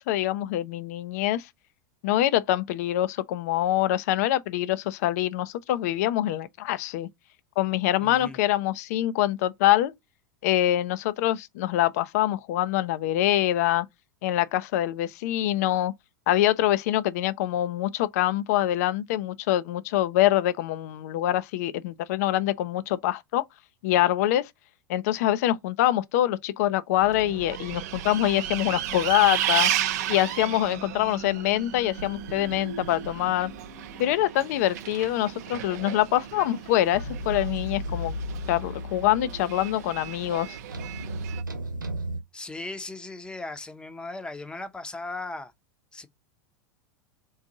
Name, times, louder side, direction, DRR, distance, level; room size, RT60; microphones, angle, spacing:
voice 1, 0.0-1.5 2.0-7.1 7.6-9.9 10.4-13.9 14.2-15.9 16.3-23.4 23.8-24.5 24.9-29.7 30.1-33.5 34.0-38.2 38.5-40.6, left 13 dB, 55° left, 0.4 m, -25 dB
voice 2, 8.0-8.4 42.3-45.5 45.9-46.1, left 2 dB, 10° left, 0.7 m, -37 dB
Bus, 27.0-41.4, right 11 dB, 60° right, 0.5 m, -34 dB
sound 1, 31.9-34.3 34.6-34.7 36.9-42.2, right 1 dB, 85° right, 0.9 m, -36 dB
3.9 x 2.6 x 3.9 m
figure-of-eight pair, 85°, 10 cm